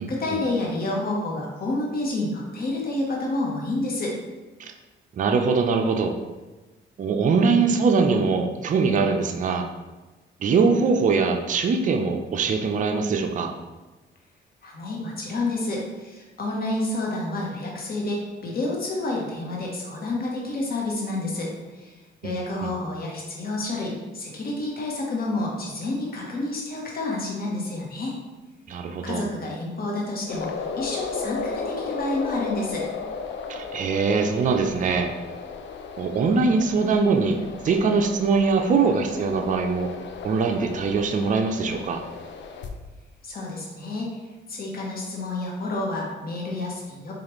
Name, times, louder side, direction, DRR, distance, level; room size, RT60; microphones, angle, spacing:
voice 1, 0.0-4.2 14.6-21.9 22.2-28.2 29.0-32.9 43.2-44.1 44.5-47.1, left 2 dB, 50° left, -2 dB, 1.0 m, -29 dB
voice 2, 5.1-6.1 7.0-9.7 10.4-13.5 22.2-22.3 22.6-22.7 28.7-29.2 33.5-35.1 36.0-37.4 37.6-39.9 40.2-42.0, right 4 dB, 40° right, 4 dB, 0.4 m, -22 dB
sound 1, 30.2-42.7, left 5 dB, 65° left, 0.5 m, -35 dB
4.7 x 2.4 x 3.0 m, 1.2 s
cardioid pair, 90°, 20 cm